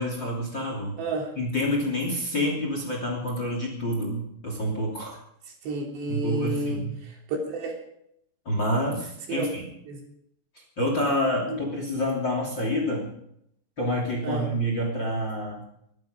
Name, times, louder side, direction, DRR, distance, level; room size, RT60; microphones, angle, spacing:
voice 1, 0.0-1.0 1.4-5.2 6.1-7.0 8.4-9.7 10.8-13.1 13.8-15.6, equal, 30° left, 1 dB, 2.9 m, -28 dB
voice 2, 1.0-1.3 5.6-6.8 7.4-7.8 9.3-9.5 9.9-10.0 11.5-11.6 14.2-14.5, right 1 dB, 65° right, 0 dB, 5.1 m, -30 dB
23.5 x 11.5 x 5.1 m, 0.75 s
omnidirectional pair, 5.5 m